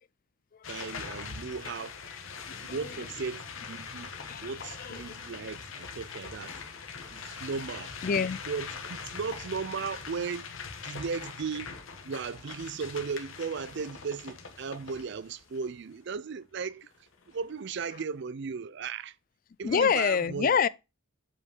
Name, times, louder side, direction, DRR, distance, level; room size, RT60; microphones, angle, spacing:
sound 1, 0.6-15.7 16.4-16.5 16.7-18.1, left 5 dB, 75° left, 1.4 m, -42 dB
voice 1, 0.7-1.9 2.6-4.1 4.4-6.5 7.1-7.9 8.5-10.5 10.8-11.7 12.0-16.9 17.3-19.1 19.6-20.5, right 5 dB, 55° right, 0.5 m, -36 dB
voice 2, 2.6-3.1 4.1-5.5 8.0-8.4 19.6-20.7, left 6 dB, 40° left, 0.4 m, -28 dB
7.8 x 5.2 x 3.7 m
head